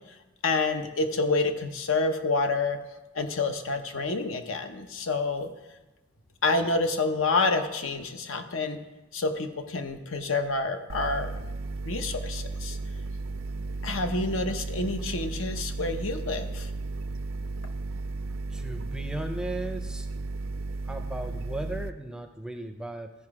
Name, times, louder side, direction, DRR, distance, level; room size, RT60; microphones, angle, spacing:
voice 1, 0.4-2.8 3.1-5.5 6.4-8.8 9.1-11.3 11.8-12.8 13.8-16.7, left 3 dB, 80° left, 7 dB, 0.9 m, -28 dB
sound 1, 10.9-21.9, right 3 dB, 80° right, 0.5 m, -34 dB
voice 2, 18.5-20.1 20.9-23.1, right 1 dB, 5° right, 6 dB, 0.5 m, -36 dB
14.5 x 5.0 x 4.8 m, 1.0 s
head